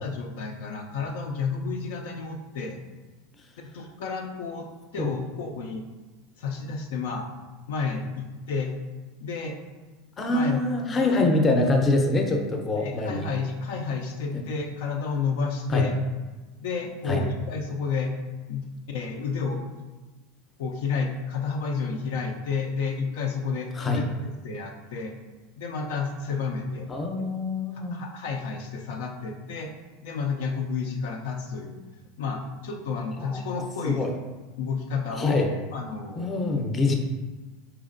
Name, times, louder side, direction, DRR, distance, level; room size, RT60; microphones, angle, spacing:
voice 1, 0.0-2.8 3.6-4.7 4.9-5.8 6.4-7.3 7.7-8.7 9.2-9.6 10.3-10.6 10.9-11.4 11.6-11.8 12.7-15.9 16.6-18.2 18.5-19.6 20.6-24.2 24.4-25.2 25.6-26.9 27.7-29.7 30.0-31.7 32.2-34.1 34.6-35.5 35.7-36.4 36.9-37.0, left 5 dB, 75° left, 2 dB, 0.4 m, -31 dB
voice 2, 10.2-13.3 15.7-15.9 17.0-17.2 23.7-24.0 26.9-28.0 33.2-34.1 35.2-35.5 36.2-36.9, left 2 dB, 25° left, 3 dB, 0.6 m, -25 dB
4.2 x 3.0 x 2.5 m, 1.3 s
hypercardioid pair, 95°, 0 cm